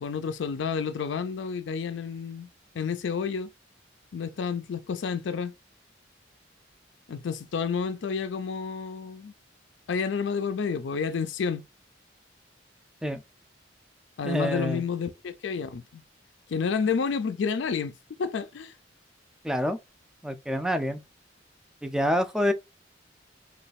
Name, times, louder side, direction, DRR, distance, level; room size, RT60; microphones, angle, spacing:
voice 1, 0.0-2.5 2.7-3.5 4.1-5.5 7.1-9.3 9.9-11.6 14.2-16.0 16.5-17.9 18.2-18.8, left 6 dB, 75° left, 0.4 m, -30 dB
voice 2, 14.2-14.8 19.4-19.8 20.2-21.0 21.8-22.5, equal, 5° right, 0.3 m, -27 dB
3.1 x 2.3 x 4.0 m
head